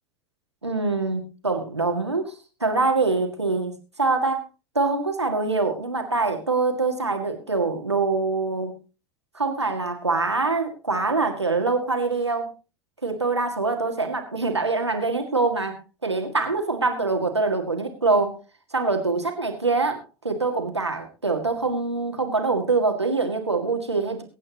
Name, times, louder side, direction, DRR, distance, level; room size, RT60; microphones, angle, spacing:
voice 1, 0.6-4.4 4.8-8.8 9.3-12.5 13.0-18.4 18.7-24.2, right 3 dB, 90° right, 4 dB, 1.8 m, -24 dB
23.0 x 8.6 x 2.9 m, 0.31 s
figure-of-eight pair, 80°, 14 cm